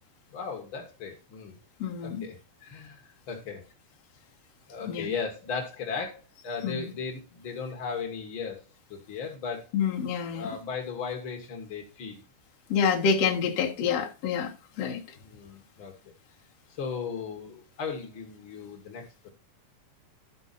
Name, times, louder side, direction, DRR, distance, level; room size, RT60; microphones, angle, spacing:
voice 1, 0.3-1.6 2.0-3.0 3.3-3.6 4.7-8.6 8.9-9.6 10.3-12.1 15.2-15.9 16.8-19.0, left 5 dB, 75° left, 1.1 m, -36 dB
voice 2, 1.8-2.3 4.8-5.1 6.6-6.9 9.7-10.5 12.7-14.5 14.8-15.0, left 6 dB, 60° left, 1.9 m, -27 dB
12.5 x 5.3 x 4.0 m
omnidirectional pair, 5.0 m